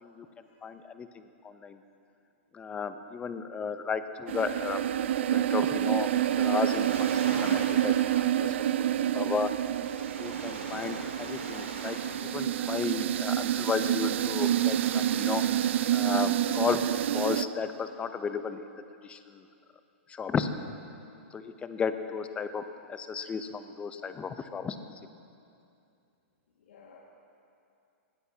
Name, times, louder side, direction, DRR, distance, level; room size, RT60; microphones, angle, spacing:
voice 1, 0.6-1.8 2.5-4.8 5.3-6.1 6.4-6.9 7.3-8.5 8.8-9.5 10.2-12.0 12.2-15.4 15.9-16.9 17.1-18.6 19.0-19.4 20.1-20.5 21.3-22.6 22.9-24.8, left 6 dB, 15° left, 10 dB, 0.7 m, -33 dB
sound 1, 4.3-17.5, right 11 dB, 65° right, 0.4 m, -28 dB
Waves surf, 5.4-17.8, right 4 dB, 90° right, 2.0 m, -43 dB
voice 2, 20.3-20.7 21.0-21.1 26.6-27.0, left 5 dB, 75° left, -3 dB, 1.9 m, -52 dB
20.0 x 16.0 x 2.9 m, 2.6 s
hypercardioid pair, 125°, 7 cm